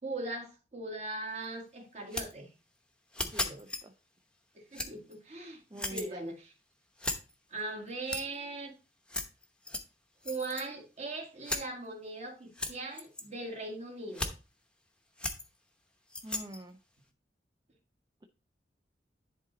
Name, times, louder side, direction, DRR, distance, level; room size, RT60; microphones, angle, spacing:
voice 1, 0.0-2.5 3.2-3.6 4.6-6.3 7.5-8.8 10.2-14.3, right 2 dB, 40° right, 2 dB, 1.8 m, -40 dB
sound 1, 1.4-1.5 2.1-2.3 3.1-3.8 4.7-5.1 5.7-6.0 7.0-7.3 7.9-8.3 9.1-9.8 10.2-10.6 11.4-11.6 12.5-13.2 14.1-14.3 15.2-15.4 16.1-16.6, left 2 dB, 5° left, 0.9 m, -35 dB
voice 2, 3.2-3.9 5.7-6.3 16.2-16.8, right 1 dB, 25° right, 7 dB, 0.5 m, -45 dB
10.0 x 4.0 x 3.9 m, 0.32 s
head